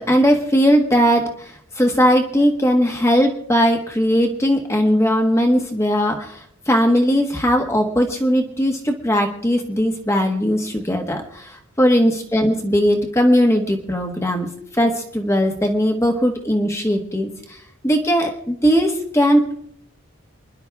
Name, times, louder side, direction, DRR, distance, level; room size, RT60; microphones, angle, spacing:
voice 1, 0.0-1.5 1.8-14.5 14.7-17.3 17.8-19.5, equal, 15° left, 3 dB, 1.5 m, -18 dB
28.5 x 11.0 x 3.5 m, 0.65 s
head